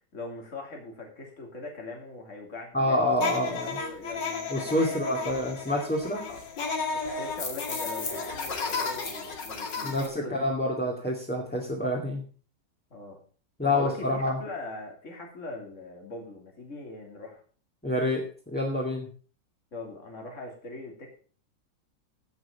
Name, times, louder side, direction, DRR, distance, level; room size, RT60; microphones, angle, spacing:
voice 1, 0.1-3.0 3.6-5.3 6.3-6.4 6.7-10.4 12.9-13.2 13.6-17.4 19.7-21.1, left 2 dB, 45° left, 1 dB, 3.2 m, -41 dB
voice 2, 2.7-3.8 4.5-6.2 9.8-10.0 10.3-12.2 13.6-14.4 17.8-19.1, left 1 dB, 5° left, -3 dB, 2.4 m, -27 dB
sound 1, 3.2-10.1, left 4 dB, 85° left, 2.8 m, -33 dB
16.0 x 6.3 x 5.9 m, 0.41 s
omnidirectional pair, 1.9 m